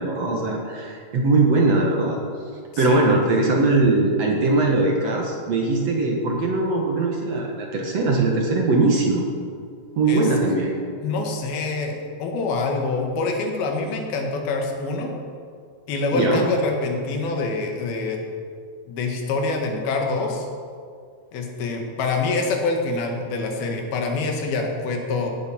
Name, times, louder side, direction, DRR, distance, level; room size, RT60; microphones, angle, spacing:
voice 1, 0.0-2.2 2.8-9.2 10.0-10.7 16.1-16.4, right 3 dB, 55° right, 0 dB, 2.2 m, -20 dB
voice 2, 2.7-3.2 10.1-10.3 11.0-15.1 15.9-18.2 18.9-20.5 21.3-25.3, left 3 dB, 80° left, 2 dB, 3.7 m, -25 dB
16.0 x 10.5 x 5.9 m, 2.2 s
omnidirectional pair, 4.3 m